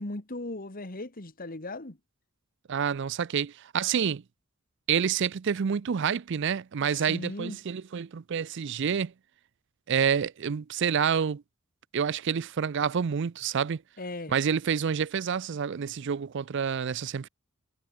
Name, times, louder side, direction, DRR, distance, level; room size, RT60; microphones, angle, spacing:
voice 1, 0.0-2.0 7.1-7.6 14.0-14.4, left 2 dB, 45° left, 2.0 m, -37 dB
voice 2, 2.7-4.2 4.9-9.1 9.9-11.4 11.9-13.8 14.3-17.3, right 7 dB, 60° right, 0.5 m, -28 dB
head